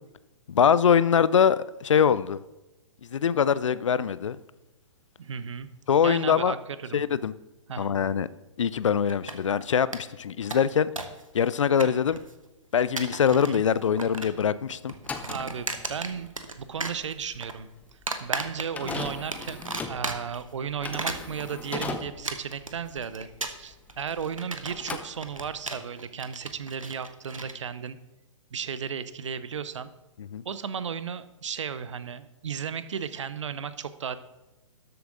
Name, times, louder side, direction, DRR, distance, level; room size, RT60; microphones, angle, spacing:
voice 1, 0.5-2.4 3.1-4.4 5.9-6.5 6.9-7.3 7.8-8.3 8.6-10.9 11.3-12.2 12.7-14.9 30.3-30.4, left 7 dB, 70° left, 17 dB, 0.5 m, -23 dB
voice 2, 5.2-5.7 6.0-6.6 6.8-7.1 7.7-8.0 13.3-13.6 15.3-17.7 18.2-19.6 19.9-28.0 28.5-29.9 30.4-34.2, right 7 dB, 65° right, 14 dB, 0.8 m, -35 dB
sound 1, 9.1-9.6 9.9-10.0 10.3-11.2 11.5-12.3 12.8-13.6 13.8-14.4 14.7-16.5 16.8-17.5 18.1-18.9 19.3-20.4 20.8-27.5, right 2 dB, 90° right, 1.1 m, -35 dB
sound 2, 14.9-24.4 24.6-25.7, left 4 dB, 10° left, 0.6 m, -39 dB
13.0 x 7.8 x 3.8 m, 1.0 s
figure-of-eight pair, 120°, 17 cm